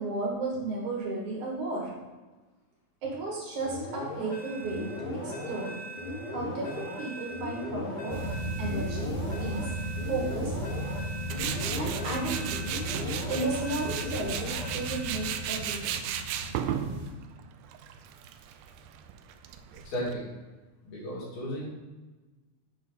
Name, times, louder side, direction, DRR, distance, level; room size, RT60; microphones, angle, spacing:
voice 1, 0.0-1.9 3.0-5.8 6.3-9.7 10.1-10.6 11.8-12.6 13.0-15.9, right 2 dB, 60° right, -3 dB, 2.8 m, -34 dB
sound 1, 3.6-15.8, left 1 dB, 60° left, 1.1 m, -38 dB
sound 2, 8.1-17.1, equal, 40° right, 2.0 m, -36 dB
Tools, 11.3-20.1, right 9 dB, 85° right, 1.8 m, -35 dB
voice 2, 19.7-20.2 20.8-21.7, equal, 85° left, -6 dB, 4.2 m, -34 dB
7.8 x 5.6 x 3.9 m, 1.2 s
omnidirectional pair, 4.2 m